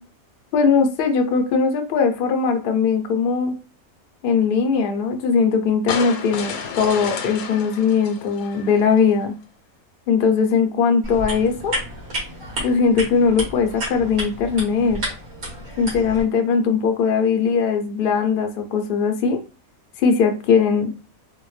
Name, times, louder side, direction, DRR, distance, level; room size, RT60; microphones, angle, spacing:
voice 1, 0.5-3.5 4.2-9.3 10.1-11.8 12.6-15.0 15.8-19.4 20.0-20.9, left 5 dB, 55° left, 5 dB, 0.6 m, -20 dB
sound 1, 5.9-9.1, left 6 dB, 80° left, 1.1 m, -31 dB
sound 2, 11.0-16.2, equal, 75° right, 1.8 m, -31 dB
3.4 x 2.1 x 3.1 m, 0.34 s
omnidirectional pair, 1.5 m